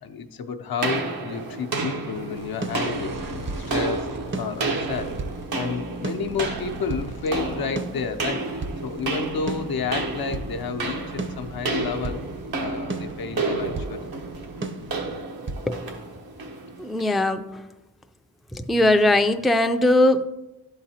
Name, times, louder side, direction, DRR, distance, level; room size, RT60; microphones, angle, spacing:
voice 1, 0.0-3.2 3.6-4.1 4.4-5.2 5.5-12.2 12.6-14.1, left 5 dB, 80° left, 6 dB, 0.7 m, -31 dB
sound 1, 0.8-17.2, right 3 dB, 80° right, 1.1 m, -31 dB
sound 2, 2.1-15.2, right 2 dB, 65° right, 1.0 m, -40 dB
sound 3, 2.6-3.7 4.3-5.4 6.0-7.1 7.8-8.8 9.5-10.5 11.2-12.2 12.9-14.0 14.6-15.7, right 2 dB, 35° right, 0.6 m, -34 dB
voice 2, 16.8-17.5 18.5-20.2, left 1 dB, ahead, 8 dB, 0.4 m, -20 dB
11.5 x 3.9 x 2.8 m, 1.0 s
cardioid pair, 50°, 36 cm